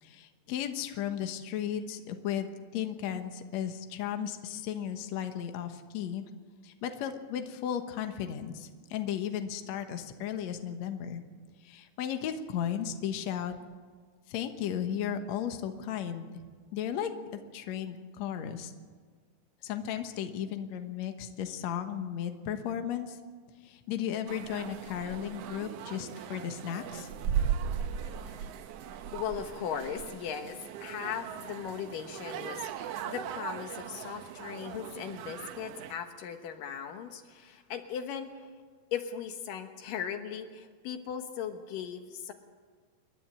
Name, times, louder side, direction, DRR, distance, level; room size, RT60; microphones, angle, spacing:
voice 1, 0.0-6.2 6.6-11.2 11.6-13.6 14.3-16.3 16.7-17.1 17.5-18.7 19.6-23.2 23.6-27.1, left 9 dB, 65° left, 6 dB, 2.2 m, -35 dB
sound 1, 24.3-35.9, right 8 dB, 80° right, 1.4 m, -38 dB
voice 2, 29.1-38.3 38.9-42.3, left 8 dB, 80° left, 7 dB, 2.9 m, -38 dB
29.0 x 11.0 x 8.7 m, 1.5 s
omnidirectional pair, 3.8 m